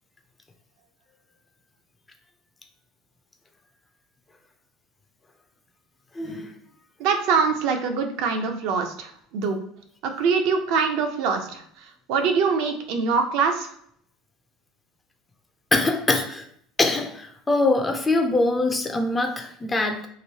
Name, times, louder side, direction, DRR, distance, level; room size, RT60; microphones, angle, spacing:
voice 1, 6.1-6.5 15.7-16.5 16.8-20.1, left 2 dB, 15° left, 5 dB, 0.4 m, -23 dB
voice 2, 7.0-9.6 10.0-13.7, right 5 dB, 60° right, 5 dB, 0.5 m, -24 dB
3.0 x 2.6 x 2.7 m, 0.66 s
cardioid pair, 160°, 0 cm